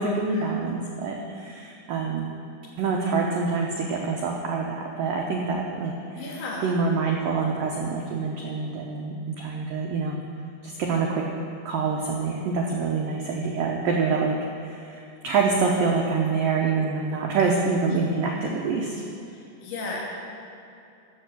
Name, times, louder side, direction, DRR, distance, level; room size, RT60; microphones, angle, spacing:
voice 1, 0.0-2.3 2.8-6.2 6.6-10.2 10.6-11.3 11.7-14.4 14.6-19.0, right 4 dB, 85° right, 0 dB, 2.0 m, -26 dB
voice 2, 6.2-6.8 19.6-20.0, left 2 dB, 80° left, -4 dB, 4.6 m, -33 dB
14.0 x 7.7 x 6.2 m, 2.6 s
omnidirectional pair, 5.3 m